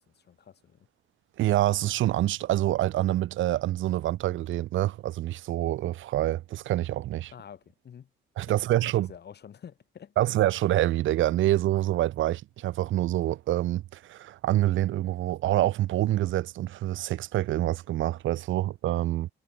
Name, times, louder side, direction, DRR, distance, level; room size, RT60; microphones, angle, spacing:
voice 1, 0.2-0.9 7.3-8.1 8.5-10.1, left 8 dB, 55° left, 7.3 m, -48 dB
voice 2, 1.4-7.3 8.4-9.1 10.2-19.3, right 14 dB, 75° right, 0.9 m, -26 dB
cardioid pair, 90°, 20 cm